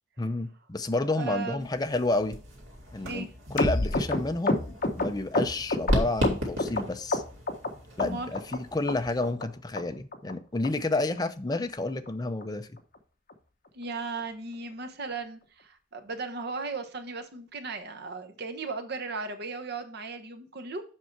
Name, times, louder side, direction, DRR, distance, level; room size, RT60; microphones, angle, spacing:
voice 1, 0.2-2.4 2.9-4.6 4.9-7.2 8.0-12.7, left 2 dB, 20° left, 8 dB, 0.6 m, -30 dB
voice 2, 1.1-1.7 3.0-3.3 8.0-8.3 13.7-20.8, right 3 dB, 55° right, 8 dB, 1.1 m, -36 dB
sound 1, 1.6-9.3, equal, 85° right, 2.7 m, -35 dB
sound 2, 3.6-6.8 7.1-7.7 8.0-8.6 8.9-9.0 9.2-9.5 9.8-9.9 10.1-10.3 10.6-10.7 11.0-11.2 11.5-11.6 11.9-12.1 12.4-12.5 12.8-13.0 13.3-13.4, left 2 dB, 45° left, 1.1 m, -28 dB
7.4 x 5.5 x 4.6 m, 0.40 s
head